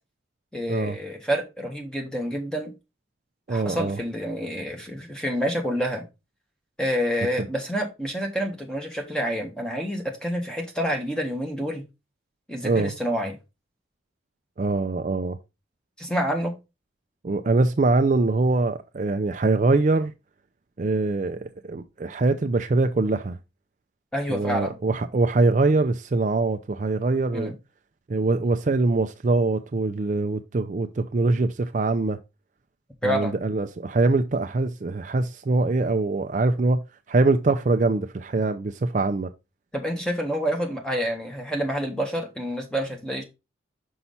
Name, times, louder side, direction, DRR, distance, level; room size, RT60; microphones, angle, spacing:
voice 1, 0.5-2.7 3.5-6.0 6.8-11.8 12.5-13.4 16.0-16.5 24.1-24.7 27.3-27.5 33.0-33.3 39.7-43.2, equal, 5° left, 1.4 m, -28 dB
voice 2, 3.5-4.0 12.6-12.9 14.6-15.4 17.2-20.1 20.8-23.4 24.3-27.5 28.1-32.2 33.0-36.8 37.1-39.3, right 3 dB, 40° right, 0.4 m, -23 dB
5.7 x 5.5 x 4.0 m
head